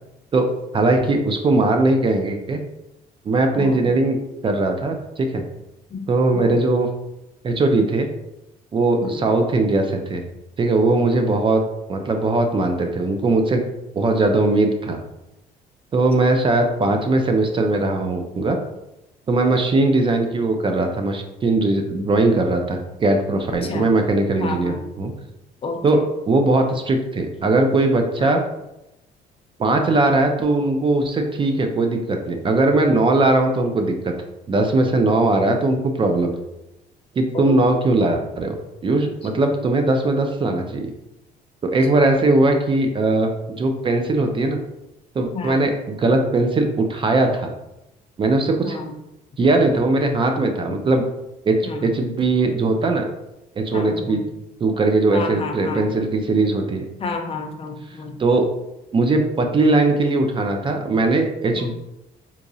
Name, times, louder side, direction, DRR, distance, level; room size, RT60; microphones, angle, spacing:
voice 1, 0.3-2.6 3.3-4.2 4.4-5.4 6.1-6.9 7.4-8.1 8.7-10.2 10.6-11.6 11.9-13.7 13.9-15.0 15.9-18.6 19.3-25.1 25.8-28.4 29.6-34.1 34.5-36.4 37.2-40.9 41.6-44.6 45.1-47.5 48.2-48.8 49.4-51.0 51.5-53.1 53.6-54.2 54.6-56.9 58.2-58.5 58.9-61.9, right 2 dB, 30° right, 4 dB, 0.4 m, -19 dB
voice 2, 24.4-24.8 25.6-26.0 28.2-28.4 37.3-38.0 45.3-45.6 48.6-48.9 50.7-50.8 51.6-51.9 53.7-54.2 55.1-55.8 57.0-58.2 61.5-61.7, left 4 dB, 35° left, 4 dB, 0.5 m, -30 dB
3.7 x 2.8 x 2.6 m, 0.91 s
cardioid pair, 110°, 17 cm